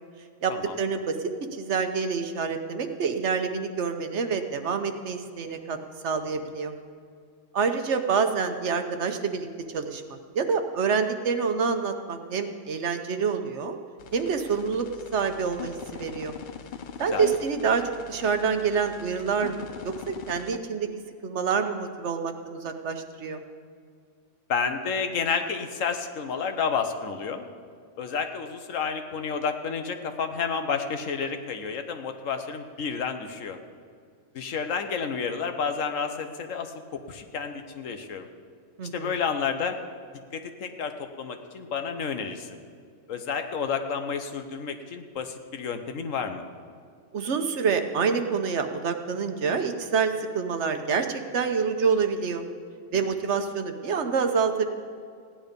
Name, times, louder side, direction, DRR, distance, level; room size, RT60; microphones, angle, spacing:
voice 1, 0.4-1.2 1.5-5.8 6.0-6.7 7.5-13.8 14.1-14.9 15.1-16.3 17.0-20.9 21.2-23.4 38.8-39.1 47.1-52.5 52.9-54.6, right 5 dB, 65° right, 7 dB, 1.2 m, -27 dB
sound 1, 14.0-20.6, left 8 dB, 55° left, 0.5 m, -42 dB
voice 2, 24.5-27.4 28.0-33.6 34.3-38.3 38.9-39.8 40.3-42.5 43.1-46.4, left 6 dB, 85° left, 7 dB, 1.3 m, -30 dB
16.0 x 10.5 x 5.2 m, 2.2 s
omnidirectional pair, 1.3 m